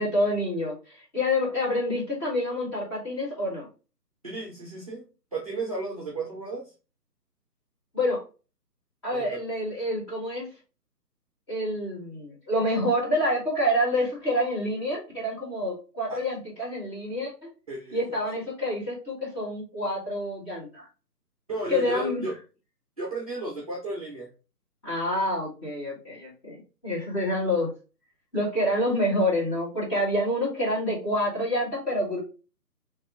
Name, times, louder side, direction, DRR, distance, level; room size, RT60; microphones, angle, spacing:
voice 1, 0.0-3.7 7.9-8.2 9.0-10.5 11.5-17.5 17.9-20.9 21.7-22.2 24.8-26.6 26.8-27.7 28.3-32.2, left 1 dB, 15° left, -6 dB, 1.7 m, -27 dB
voice 2, 4.2-5.0 5.3-6.7 9.1-9.4 16.1-16.2 17.7-18.0 21.5-22.3 23.0-24.3, right 2 dB, 20° right, -2 dB, 0.7 m, -33 dB
4.5 x 3.0 x 3.7 m, 0.33 s
figure-of-eight pair, 145°, 49 cm